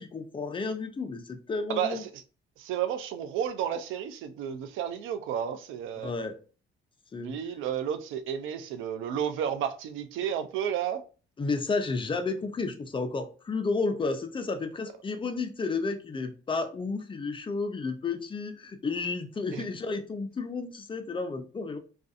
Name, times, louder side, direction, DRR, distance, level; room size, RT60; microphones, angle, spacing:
voice 1, 0.0-2.0 6.0-6.4 7.1-7.4 11.4-21.8, left 4 dB, 25° left, 0.5 m, -32 dB
voice 2, 1.7-2.2 2.6-6.1 7.2-11.0 19.5-19.6, right 9 dB, 90° right, 0.4 m, -32 dB
2.5 x 2.4 x 2.4 m
cardioid pair, 90°, 20 cm